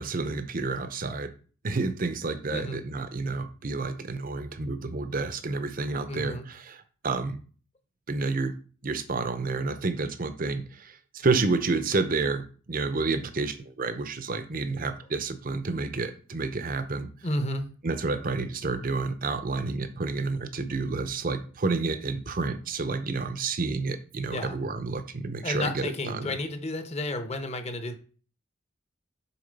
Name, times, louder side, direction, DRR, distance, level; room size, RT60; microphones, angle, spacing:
voice 1, 0.0-1.3 1.6-6.8 7.0-7.4 8.1-8.5 8.8-17.1 17.8-26.3, right 3 dB, 45° right, 10 dB, 0.7 m, -30 dB
voice 2, 2.5-2.8 6.1-6.5 17.2-17.7 24.3-24.6 25.4-28.0, left 1 dB, 30° left, 7 dB, 0.9 m, -32 dB
7.1 x 3.7 x 5.2 m, 0.40 s
head